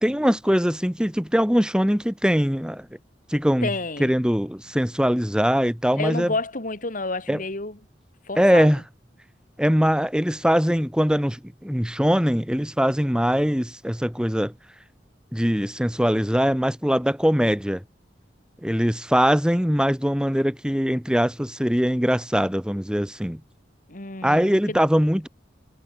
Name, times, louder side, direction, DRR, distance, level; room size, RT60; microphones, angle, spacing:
voice 1, 0.0-2.9 3.3-3.7 4.0-6.3 7.3-7.4 8.4-8.8 9.6-14.5 15.3-17.8 18.6-23.4 24.2-25.3, equal, 5° right, 2.0 m, -22 dB
voice 2, 3.6-4.1 6.0-7.8 8.3-8.7 23.9-24.8, left 2 dB, 50° left, 2.5 m, -30 dB
head